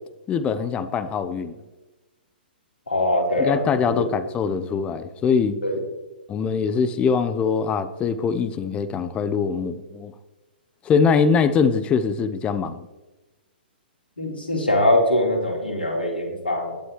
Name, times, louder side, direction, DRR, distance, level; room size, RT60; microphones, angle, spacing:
voice 1, 0.3-1.5 3.4-5.6 6.3-10.1 10.9-12.8, left 6 dB, 20° left, 13 dB, 0.9 m, -22 dB
voice 2, 2.9-3.6 3.9-4.0 5.6-5.8 14.2-16.8, left 1 dB, 80° left, 0 dB, 4.1 m, -22 dB
20.0 x 11.0 x 3.2 m, 1.1 s
figure-of-eight pair, 115°, 5 cm